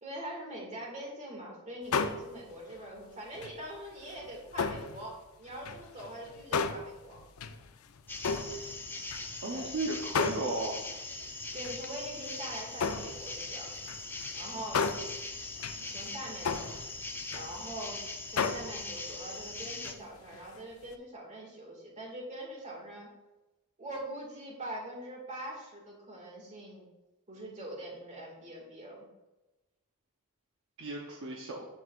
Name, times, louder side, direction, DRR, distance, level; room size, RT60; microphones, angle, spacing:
voice 1, 0.0-7.2 9.5-9.7 11.5-13.7 14.3-14.8 15.8-16.7 17.3-18.0 18.3-23.1 23.8-26.9 27.3-29.0, right 1 dB, 35° right, -1 dB, 2.0 m, -43 dB
sound 1, 1.9-3.0 3.3-5.2 5.5-9.7 10.1-11.0 11.5-17.9 18.4-20.0 20.3-20.6 20.9-21.0, left 5 dB, 75° left, 0.5 m, -35 dB
sound 2, 8.1-19.9, left 3 dB, 10° left, 0.6 m, -41 dB
voice 2, 9.4-10.8 30.8-31.7, right 2 dB, 65° right, -1 dB, 0.8 m, -35 dB
7.9 x 7.6 x 2.5 m, 1.1 s
head